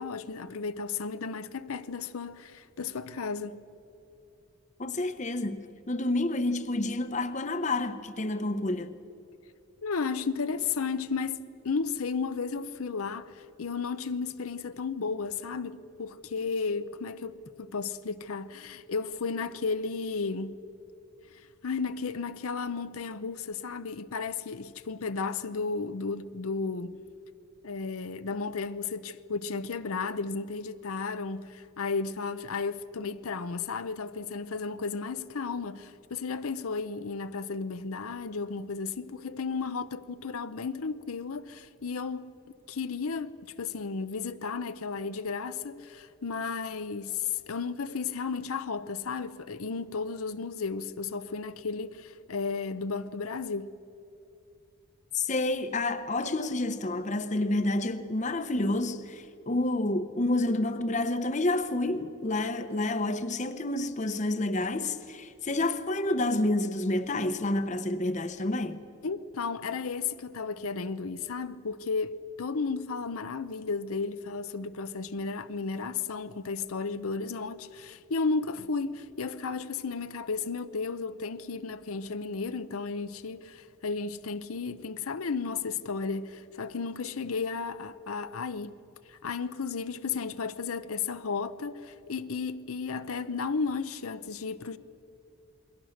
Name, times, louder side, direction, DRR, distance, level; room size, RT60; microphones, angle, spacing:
voice 1, 0.0-3.7 9.8-20.6 21.6-26.9 27.6-42.3 42.7-53.7 69.0-88.8 89.1-94.8, left 4 dB, 85° left, 0.7 m, -33 dB
voice 2, 4.8-8.9 55.1-68.8, left 2 dB, 35° left, 0.9 m, -29 dB
28.0 x 22.0 x 6.5 m
head